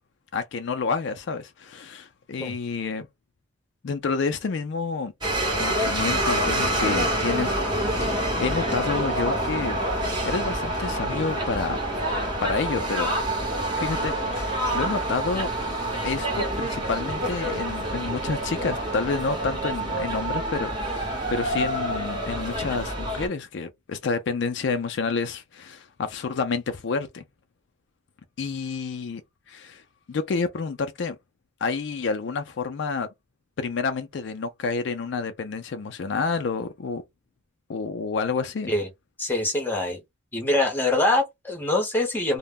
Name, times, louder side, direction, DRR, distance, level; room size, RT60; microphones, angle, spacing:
voice 1, 0.3-3.1 3.8-5.1 5.6-7.6 8.0-9.8 10.2-11.8 12.4-13.1 13.8-15.5 16.0-27.2 28.4-29.2 29.5-29.8 30.1-31.2 31.6-33.1 33.6-37.0 37.7-38.7, left 4 dB, 60° left, 0.4 m, -29 dB
sound 1, 5.2-23.3, right 1 dB, 20° right, 0.9 m, -27 dB
voice 2, 39.2-40.0 40.3-42.4, left 2 dB, 10° left, 0.8 m, -24 dB
2.1 x 2.0 x 3.5 m
head